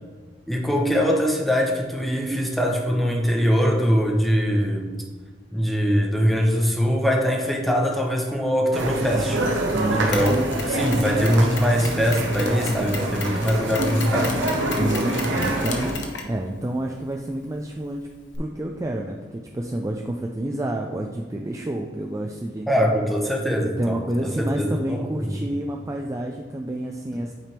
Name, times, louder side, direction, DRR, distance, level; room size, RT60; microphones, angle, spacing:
voice 1, 0.5-4.9 5.5-9.4 9.9-10.4 10.7-14.3 22.7-25.4, equal, ahead, -1 dB, 0.8 m, -22 dB
sound 1, 8.7-15.9, right 1 dB, 85° right, 0.9 m, -26 dB
voice 2, 9.7-10.5 14.8-18.1 18.4-23.1 23.6-27.3, right 1 dB, 15° right, 1 dB, 0.3 m, -29 dB
Mechanisms, 10.1-18.4, left 4 dB, 70° left, 0.9 m, -36 dB
8.6 x 3.4 x 4.4 m, 1.5 s
head